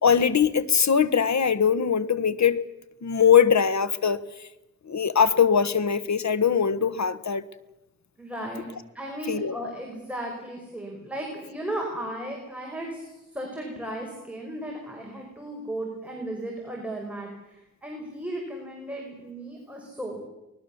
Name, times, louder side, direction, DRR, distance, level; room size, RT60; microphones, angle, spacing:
voice 1, 0.0-2.6 3.0-4.2 4.9-7.4 9.3-9.5, left 7 dB, 65° left, 14 dB, 1.3 m, -21 dB
voice 2, 8.2-20.2, right 1 dB, 5° right, 0 dB, 5.0 m, -35 dB
24.5 x 19.5 x 7.1 m, 0.96 s
wide cardioid pair, 95°, 31 cm